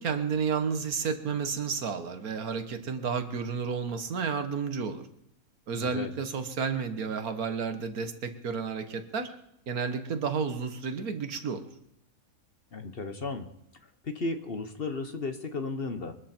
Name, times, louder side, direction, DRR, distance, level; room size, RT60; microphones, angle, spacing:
voice 1, 0.0-5.1 5.7-9.3 9.7-11.6, right 5 dB, 75° right, 8 dB, 1.8 m, -31 dB
voice 2, 5.7-6.1 12.7-13.5 14.0-16.1, left 3 dB, 40° left, 7 dB, 1.3 m, -34 dB
23.0 x 13.0 x 4.5 m, 0.79 s
omnidirectional pair, 1.6 m